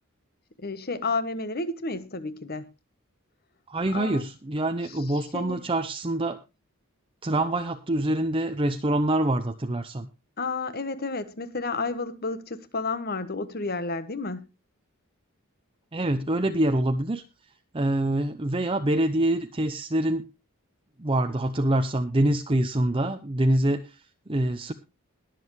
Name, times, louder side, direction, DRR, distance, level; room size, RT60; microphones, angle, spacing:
voice 1, 0.6-2.7 3.9-4.2 5.3-5.6 10.4-14.5, left 3 dB, 45° left, 1.3 m, -31 dB
voice 2, 3.7-6.4 7.2-10.1 15.9-17.2 17.7-20.3 21.0-24.0 24.3-24.7, right 1 dB, 25° right, 0.7 m, -25 dB
21.5 x 7.6 x 3.2 m
head